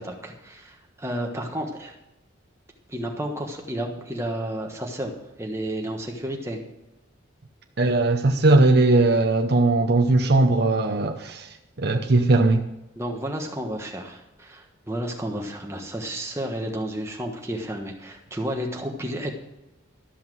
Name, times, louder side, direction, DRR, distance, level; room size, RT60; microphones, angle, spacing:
voice 1, 0.0-1.9 2.9-6.6 13.0-19.3, right 1 dB, 15° right, 1 dB, 1.3 m, -31 dB
voice 2, 7.8-12.6, right 2 dB, 50° right, 2 dB, 0.7 m, -19 dB
13.0 x 5.7 x 7.6 m, 0.94 s
head